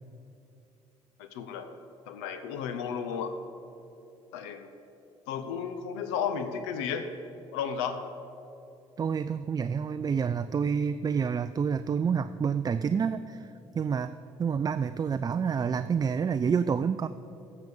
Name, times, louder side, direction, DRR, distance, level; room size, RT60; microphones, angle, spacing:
voice 1, 1.2-1.8 2.1-3.3 4.3-4.7 5.3-7.1 7.5-8.0, left 7 dB, 70° left, 9 dB, 0.7 m, -33 dB
voice 2, 9.0-13.5 13.7-14.1 14.4-17.1, right 6 dB, 25° right, 11 dB, 0.3 m, -28 dB
15.0 x 5.1 x 7.2 m, 2.8 s
figure-of-eight pair, 50°, 16 cm